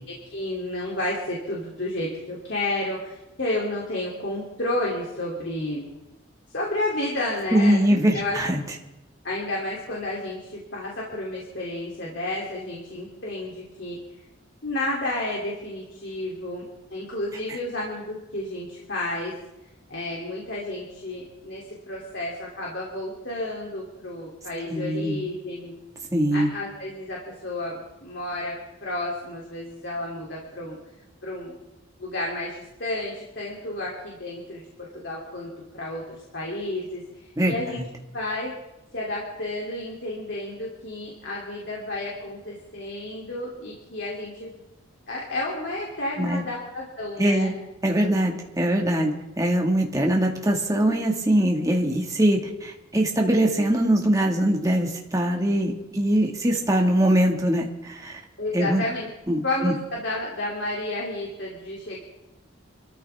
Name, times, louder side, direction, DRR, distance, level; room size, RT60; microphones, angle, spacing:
voice 1, 0.3-5.9 6.5-8.4 9.2-14.0 14.6-16.6 16.9-19.3 19.9-25.7 26.3-28.6 28.8-30.8 31.2-31.5 32.0-34.6 34.9-37.8 38.1-38.5 38.9-44.6 45.1-47.5 58.4-59.1 59.4-62.0, left 1 dB, 65° left, -4 dB, 3.0 m, -31 dB
voice 2, 7.5-8.6 24.7-25.2 26.1-26.5 37.4-37.5 46.2-46.4 47.2-47.5 47.8-58.2 58.5-58.8 59.3-59.7, right 1 dB, 15° right, 0 dB, 1.8 m, -22 dB
28.0 x 13.5 x 3.5 m, 0.96 s
head